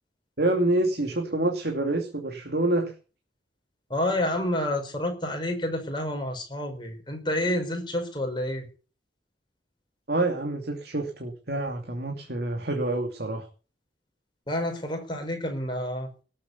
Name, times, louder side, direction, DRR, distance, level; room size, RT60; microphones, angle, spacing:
voice 1, 0.4-2.9 10.1-13.5, right 2 dB, 60° right, 3 dB, 2.8 m, -27 dB
voice 2, 3.9-8.7 14.5-16.1, left 1 dB, 25° left, 4 dB, 5.5 m, -29 dB
18.5 x 8.6 x 8.3 m, 0.38 s
head